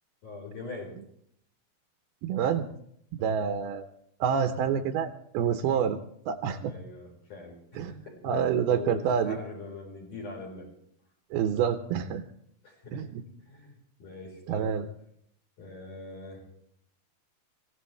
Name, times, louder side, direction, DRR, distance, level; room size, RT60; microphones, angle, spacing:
voice 1, 0.2-1.0 3.2-3.4 6.6-10.7 12.6-13.1 13.4-13.7 14.0-14.7 15.6-16.4, left 3 dB, 55° left, -2 dB, 5.7 m, -43 dB
voice 2, 2.2-2.7 3.2-3.9 4.2-5.1 5.3-6.0 6.3-6.7 7.8-7.9 8.2-9.4 11.3-12.2 12.9-13.2 14.5-14.9, right 7 dB, 80° right, 5 dB, 2.8 m, -27 dB
23.5 x 16.5 x 3.3 m, 0.70 s
omnidirectional pair, 4.5 m